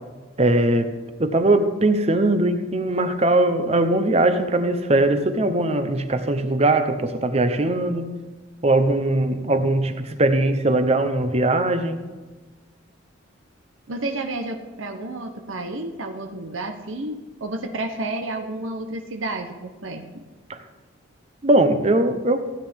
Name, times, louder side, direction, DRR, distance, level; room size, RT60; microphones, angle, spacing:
voice 1, 0.4-0.9 1.2-8.1 8.6-12.0 20.5-20.6 21.4-22.5, right 2 dB, 30° right, 9 dB, 0.8 m, -20 dB
voice 2, 13.9-20.2, right 2 dB, 80° right, 5 dB, 0.9 m, -31 dB
16.0 x 9.2 x 3.6 m, 1.3 s
head